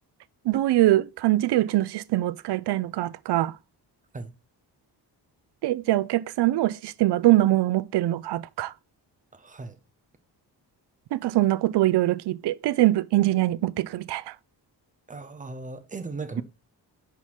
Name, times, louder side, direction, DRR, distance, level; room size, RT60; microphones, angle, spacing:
voice 1, 0.5-3.6 5.6-8.7 11.1-14.3, right 16 dB, 75° right, 0.5 m, -23 dB
voice 2, 9.3-9.8 15.1-16.4, right 3 dB, 20° right, 0.6 m, -37 dB
5.7 x 4.7 x 5.7 m
wide cardioid pair, 180°, 41 cm